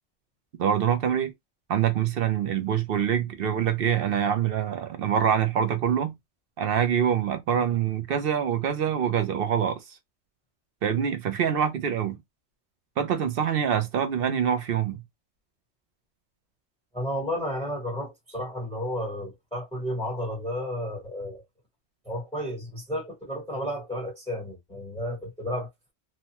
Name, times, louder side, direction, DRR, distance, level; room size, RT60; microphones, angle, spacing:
voice 1, 0.6-1.3 1.7-6.1 6.6-10.0 10.8-12.2 13.0-15.0, right 8 dB, 60° right, 0.6 m, -25 dB
voice 2, 16.9-21.4 22.0-25.7, equal, 5° left, 1.0 m, -32 dB
2.8 x 2.1 x 2.8 m
omnidirectional pair, 1.3 m